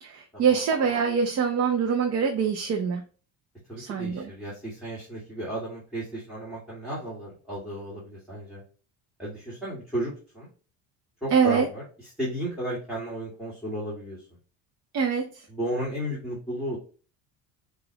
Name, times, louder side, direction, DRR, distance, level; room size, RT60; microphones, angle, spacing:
voice 1, 0.0-3.0 3.8-4.3 11.3-11.7 14.9-15.3, right 6 dB, 45° right, 2 dB, 0.7 m, -24 dB
voice 2, 3.7-8.6 9.2-10.5 11.2-14.2 15.5-16.8, right 1 dB, ahead, -7 dB, 2.0 m, -34 dB
6.1 x 2.5 x 2.9 m, 0.37 s
cardioid pair, 135°, 36 cm